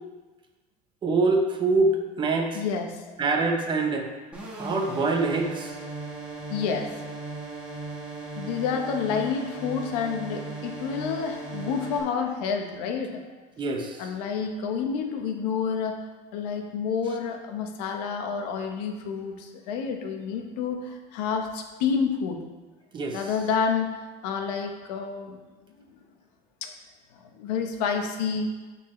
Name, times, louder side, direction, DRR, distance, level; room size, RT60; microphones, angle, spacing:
voice 1, 1.0-2.6 3.2-4.1 4.5-5.8 13.6-14.0 22.9-23.2, right 3 dB, 25° right, 3 dB, 0.8 m, -24 dB
voice 2, 2.5-3.0 6.5-6.9 8.4-13.2 14.0-16.0 16.3-22.4 23.1-23.9 24.2-25.4 26.6-26.7 27.4-28.5, left 6 dB, 80° left, 4 dB, 1.1 m, -29 dB
sound 1, 4.3-12.0, right 3 dB, 5° right, 1.4 m, -37 dB
12.5 x 4.4 x 3.2 m, 1.2 s
cardioid pair, 160°, 20 cm